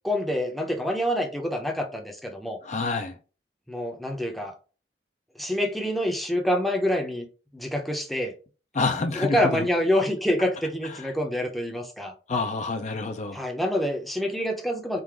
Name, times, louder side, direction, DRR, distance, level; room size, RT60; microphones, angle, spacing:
voice 1, 0.0-2.6 3.7-4.5 5.4-7.3 7.5-8.3 9.1-12.1 13.3-15.0, equal, ahead, 0.7 m, -26 dB
voice 2, 2.6-3.1 8.7-9.6 12.3-13.4, left 3 dB, 40° left, 0.5 m, -27 dB
3.8 x 2.5 x 4.7 m
head